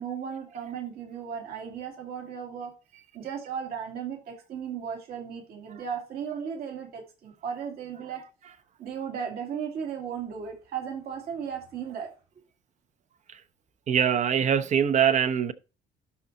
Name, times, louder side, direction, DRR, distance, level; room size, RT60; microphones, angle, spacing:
voice 1, 0.0-2.7 3.1-8.2 8.8-12.1 12.4-12.5, right 7 dB, 65° right, 2.3 m, -36 dB
voice 2, 13.9-15.5, right 8 dB, 45° right, 0.8 m, -23 dB
11.5 x 4.1 x 4.0 m
cardioid pair, 110°, 17 cm